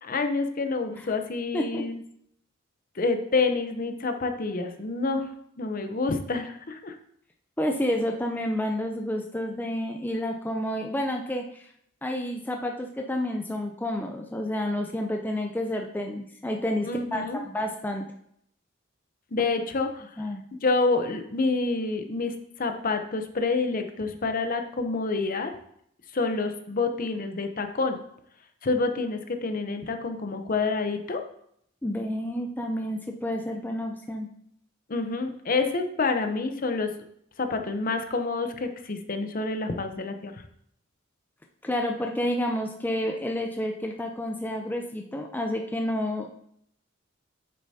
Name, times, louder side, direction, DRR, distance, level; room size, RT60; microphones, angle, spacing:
voice 1, 0.0-2.0 3.0-5.3 5.6-7.0 16.9-17.4 19.3-20.1 20.6-25.5 26.1-28.0 28.6-31.2 34.9-36.9 37.4-40.4, left 3 dB, 45° left, 7 dB, 0.7 m, -28 dB
voice 2, 1.5-1.8 7.6-11.7 12.0-18.1 20.2-20.4 31.8-34.3 41.6-46.3, left 1 dB, 10° left, 2 dB, 0.5 m, -30 dB
8.7 x 6.6 x 2.8 m, 0.69 s
head